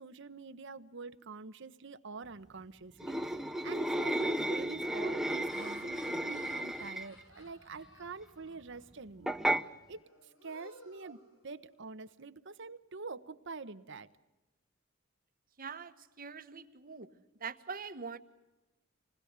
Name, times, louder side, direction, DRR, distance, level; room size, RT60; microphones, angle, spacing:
voice 1, 0.0-9.4 9.6-14.1, right 4 dB, 65° right, 11 dB, 1.0 m, -46 dB
sound 1, 3.0-7.2 9.3-9.6, right 1 dB, ahead, 0.7 m, -33 dB
Laughter, 5.1-8.9 9.3-9.6 10.0-11.9, left 1 dB, 70° left, 5.5 m, -57 dB
voice 2, 15.6-17.1 17.4-18.2, right 5 dB, 45° right, 9 dB, 1.3 m, -43 dB
27.5 x 20.5 x 8.1 m, 1.1 s
head